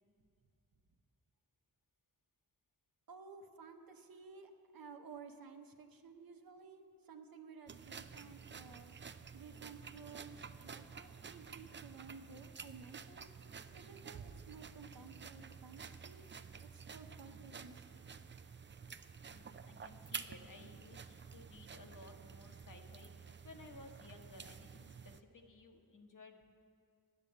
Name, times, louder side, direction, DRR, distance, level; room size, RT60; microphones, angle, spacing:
voice 1, 3.1-8.9 9.3-13.3 13.7-16.2 16.6-18.4, right 5 dB, 65° right, 5 dB, 0.9 m, -55 dB
sound 1, 7.7-25.2, right 6 dB, 30° right, 0.4 m, -51 dB
voice 2, 19.2-26.6, left 2 dB, 55° left, 4 dB, 1.2 m, -57 dB
9.9 x 6.6 x 8.4 m, 2.4 s
cardioid pair, 50°, 37 cm